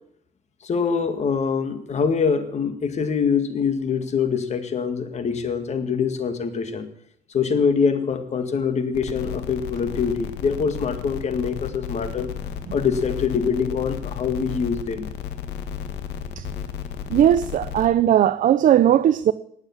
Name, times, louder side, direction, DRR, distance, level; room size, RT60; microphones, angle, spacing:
voice 1, 0.6-6.9 7.3-12.3 12.7-15.1, left 6 dB, 40° left, 2.1 m, -24 dB
sound 1, 8.9-17.9, left 8 dB, 80° left, 1.7 m, -33 dB
voice 2, 17.1-19.3, right 11 dB, 50° right, 0.6 m, -18 dB
19.0 x 7.3 x 7.3 m
cardioid pair, 110°, 17 cm